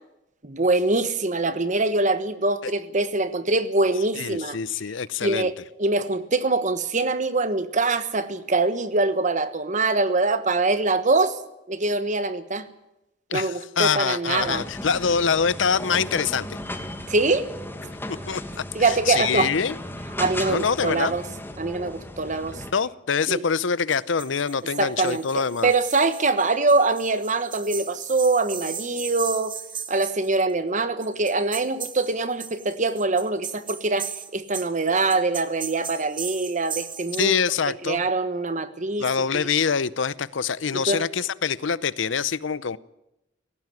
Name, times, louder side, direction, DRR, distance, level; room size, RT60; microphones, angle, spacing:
voice 1, 0.4-4.6 5.2-5.5 5.8-11.4 11.7-12.7 13.3-14.7 17.1-17.5 18.7-19.5 20.2-21.2 21.6-22.6 23.3-23.4 24.8-29.5 29.9-37.4 37.8-39.1 39.3-39.4 40.7-41.0, right 3 dB, 40° right, 12 dB, 1.3 m, -24 dB
voice 2, 4.2-5.5 13.3-16.5 18.1-19.8 20.5-21.2 22.7-25.7 37.2-38.0 39.0-42.8, left 6 dB, 75° left, 19 dB, 0.7 m, -25 dB
sound 1, 14.4-22.7, left 1 dB, 10° left, 1.5 m, -36 dB
sound 2, 23.9-30.3 31.0-37.4, right 7 dB, 25° right, 1.3 m, -37 dB
18.0 x 15.5 x 9.5 m, 0.88 s
head